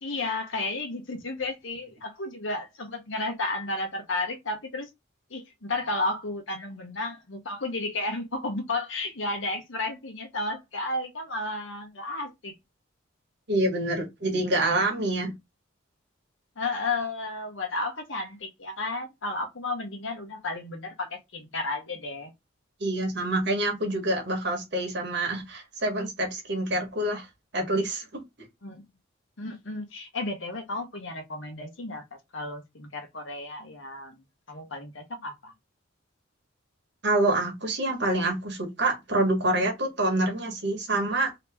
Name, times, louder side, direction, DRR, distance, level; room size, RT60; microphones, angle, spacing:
voice 1, 0.0-4.9 5.3-12.5 16.6-22.3 28.6-28.9 29.4-35.5, left 2 dB, 70° left, 1.0 m, -33 dB
voice 2, 13.5-15.3 22.8-27.3 27.5-28.2 37.0-41.3, right 1 dB, 55° right, 1.3 m, -26 dB
2.9 x 2.9 x 3.4 m
head